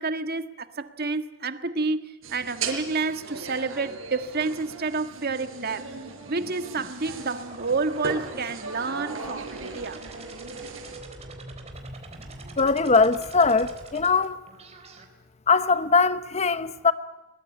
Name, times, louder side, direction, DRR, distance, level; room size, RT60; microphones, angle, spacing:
voice 1, 0.0-5.9 6.3-10.0, right 4 dB, 50° right, 1.6 m, -29 dB
sound 1, 2.2-11.0, right 3 dB, 85° right, 5.2 m, -38 dB
sound 2, 5.7-15.0, right 3 dB, 35° right, 4.0 m, -44 dB
voice 2, 12.6-14.4 15.5-16.9, left 4 dB, 35° left, 0.9 m, -21 dB
22.5 x 21.5 x 9.7 m
head